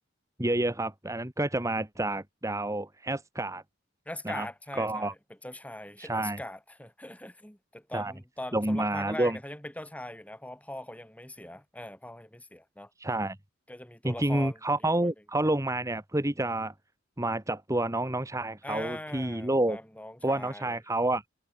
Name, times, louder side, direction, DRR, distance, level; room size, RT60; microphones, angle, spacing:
voice 1, 0.4-3.6 4.3-4.5 4.7-5.1 6.0-6.4 7.9-8.1 8.5-9.4 13.0-13.4 14.0-16.7 17.2-19.8 20.2-21.2, right 1 dB, 15° right, 1.9 m, -29 dB
voice 2, 4.1-12.9 13.7-14.6 15.0-15.1 18.6-20.8, left 1 dB, 5° left, 3.8 m, -41 dB
head